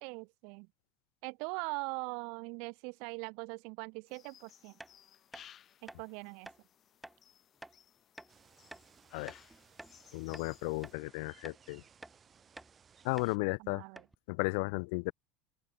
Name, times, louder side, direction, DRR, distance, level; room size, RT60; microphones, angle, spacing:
voice 1, 0.0-0.7 1.2-4.7 5.8-6.5 13.6-14.0, right 33 dB, 60° right, 0.4 m, -41 dB
sound 1, 4.1-10.9, left 10 dB, 30° left, 5.7 m, -60 dB
sound 2, 4.8-4.9 5.3-5.5 5.9-6.0 6.5-6.6 7.0-7.2 7.6-7.8 8.2-8.3 8.7-8.9 9.3-10.0 10.3-10.5 10.8-11.0 11.4-11.6 12.0-12.2 12.6-12.7 13.2-13.3 13.6-13.7 14.0-14.2, right 1 dB, 5° right, 1.2 m, -50 dB
sound 3, 8.3-13.4, right 7 dB, 20° right, 2.5 m, -63 dB
voice 2, 10.1-11.8 13.0-13.8 14.3-15.1, left 31 dB, 65° left, 0.6 m, -34 dB
open air
cardioid pair, 160°, 0 cm